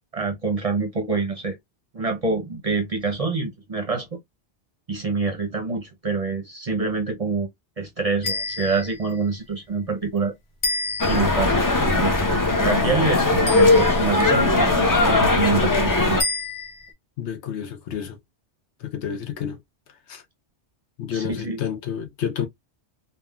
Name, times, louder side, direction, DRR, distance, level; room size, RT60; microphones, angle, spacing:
voice 1, 0.1-1.6 1.9-4.2 4.9-7.5 7.8-10.3 11.1-11.6 11.9-12.1 12.6-16.2 21.1-21.6, right 4 dB, 40° right, 0.7 m, -26 dB
sound 1, 8.2-9.1 10.6-11.5 13.5-14.2 16.2-16.9, left 2 dB, 55° left, 1.3 m, -29 dB
sound 2, 11.0-16.2, left 2 dB, 30° left, 0.4 m, -19 dB
voice 2, 17.2-18.2 18.8-19.6 20.1-20.2 21.0-22.5, left 8 dB, 75° left, 1.0 m, -30 dB
3.5 x 2.1 x 2.3 m
omnidirectional pair, 1.2 m